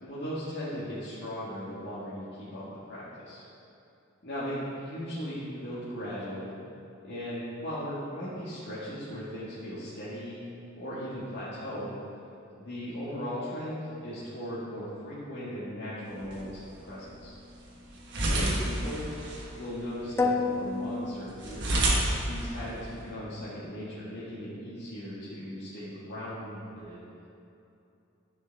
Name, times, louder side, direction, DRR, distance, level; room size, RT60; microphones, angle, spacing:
voice 1, 0.0-3.4 4.2-6.5 7.0-10.4 10.8-11.9 12.6-17.4 18.2-19.1 19.5-21.8 22.3-27.0, equal, 55° left, -11 dB, 1.8 m, -37 dB
sound 1, 16.1-23.1, right 1 dB, 60° right, 1.3 m, -32 dB
sound 2, 20.2-22.2, left 3 dB, 10° left, 0.3 m, -30 dB
13.0 x 5.5 x 3.5 m, 2.7 s
head